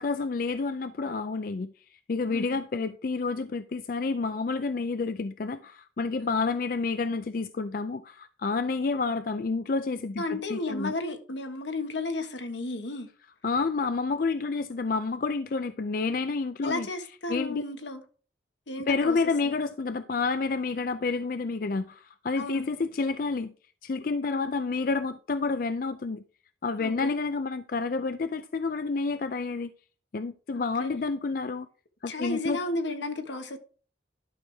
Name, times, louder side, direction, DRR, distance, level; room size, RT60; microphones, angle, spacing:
voice 1, 0.0-10.9 13.4-16.9 17.3-17.6 18.9-23.5 23.8-26.2 26.6-29.7 30.1-31.7 32.0-32.6, left 4 dB, 50° left, 0.4 m, -29 dB
voice 2, 10.2-13.1 16.6-18.0 18.7-19.2 19.4-19.5 22.4-22.7 24.3-24.5 26.8-27.1 30.5-31.0 32.1-33.6, left 2 dB, 80° left, 1.5 m, -33 dB
11.5 x 6.3 x 3.4 m
head